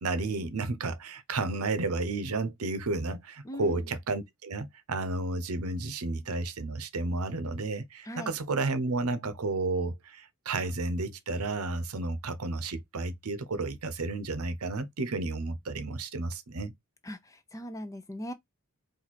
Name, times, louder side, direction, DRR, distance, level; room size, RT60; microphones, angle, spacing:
voice 1, 0.0-16.7, right 3 dB, 85° right, 0.8 m, -32 dB
voice 2, 3.4-3.9 8.0-8.3 17.0-18.3, equal, 15° left, 0.5 m, -39 dB
4.6 x 2.6 x 4.1 m
head